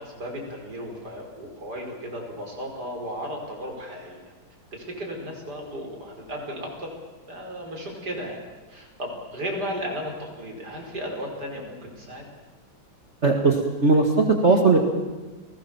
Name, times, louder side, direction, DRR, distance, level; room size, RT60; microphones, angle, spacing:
voice 1, 0.0-4.3 4.7-7.0 7.3-8.4 8.7-12.3, equal, 50° right, 1 dB, 5.6 m, -35 dB
voice 2, 13.2-13.6 13.8-14.9, right 3 dB, 35° right, 3 dB, 2.1 m, -18 dB
29.5 x 19.5 x 7.2 m, 1.3 s
omnidirectional pair, 2.2 m